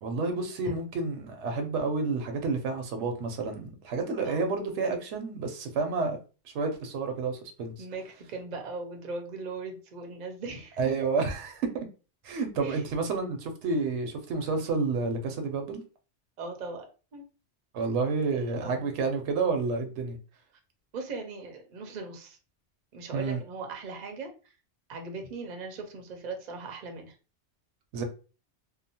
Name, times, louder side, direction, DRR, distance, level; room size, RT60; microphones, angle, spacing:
voice 1, 0.0-6.2 6.5-7.9 10.8-11.7 12.2-15.8 17.7-20.2 23.1-23.4 27.9-28.0, right 4 dB, 80° right, 0.9 m, -30 dB
voice 2, 7.8-11.0 12.6-13.0 16.4-16.9 17.1-17.2 18.2-18.9 20.9-22.4 22.9-24.3 24.9-27.1, right 3 dB, 50° right, 0.6 m, -39 dB
2.8 x 2.0 x 2.7 m
omnidirectional pair, 1.2 m